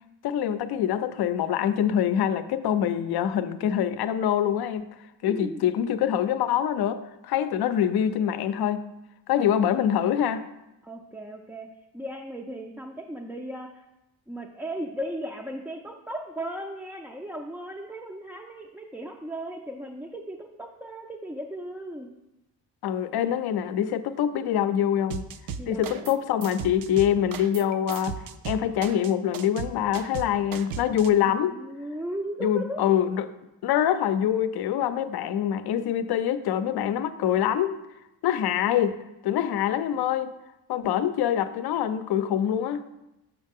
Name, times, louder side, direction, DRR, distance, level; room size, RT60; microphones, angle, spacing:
voice 1, 0.2-4.8 5.2-8.9 9.3-10.4 22.8-25.2 25.7-28.1 28.5-31.6 32.4-33.3 33.6-37.7 38.2-40.3 40.7-42.9, left 10 dB, 65° left, 12 dB, 0.6 m, -25 dB
voice 2, 5.2-5.7 10.8-11.7 11.9-13.8 14.3-22.1 25.6-26.2 31.2-32.8, right 1 dB, 5° right, 0 dB, 0.4 m, -36 dB
sound 1, 25.1-26.2 26.4-31.1, right 7 dB, 55° right, 0.5 m, -36 dB
6.4 x 6.0 x 3.6 m, 0.93 s
cardioid pair, 100°, 41 cm